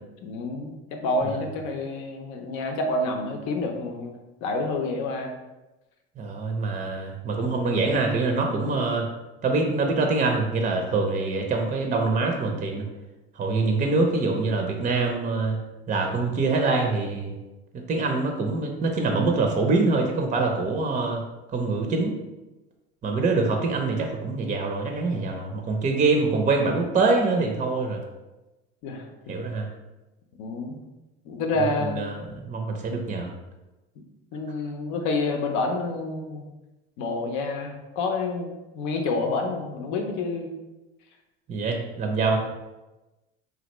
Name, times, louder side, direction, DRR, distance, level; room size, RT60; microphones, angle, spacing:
voice 1, 0.2-5.4 28.8-29.3 30.4-30.8 31.2-32.0 34.3-36.4 37.0-38.5 38.7-40.5, left 2 dB, 65° left, 3 dB, 0.7 m, -28 dB
voice 2, 6.2-9.1 9.4-12.9 13.4-15.6 15.9-17.4 17.9-21.2 21.5-22.1 23.0-28.0 29.3-29.7 31.6-33.3 41.5-42.4, right 3 dB, 25° right, 3 dB, 0.5 m, -24 dB
3.2 x 2.5 x 3.0 m, 1.1 s
hypercardioid pair, 80°, 32 cm